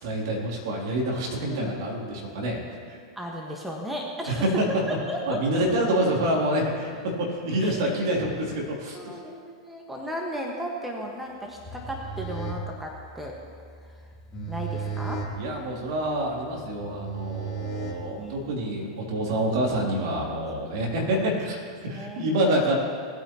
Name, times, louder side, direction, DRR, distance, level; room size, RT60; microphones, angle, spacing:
voice 1, 0.0-2.6 2.9-3.0 4.3-4.6 5.3-9.1 15.4-22.8, right 1 dB, 60° right, -2 dB, 3.0 m, -27 dB
voice 2, 3.1-4.6 5.1-5.4 7.6-7.9 8.9-13.4 13.8-14.0 14.5-15.2 18.2-18.3 21.9-22.2, equal, 5° right, 0 dB, 1.5 m, -35 dB
sound 1, 11.6-18.5, right 4 dB, 20° left, 2.6 m, -36 dB
19.0 x 9.0 x 3.0 m, 2.1 s
hypercardioid pair, 100°, 2 cm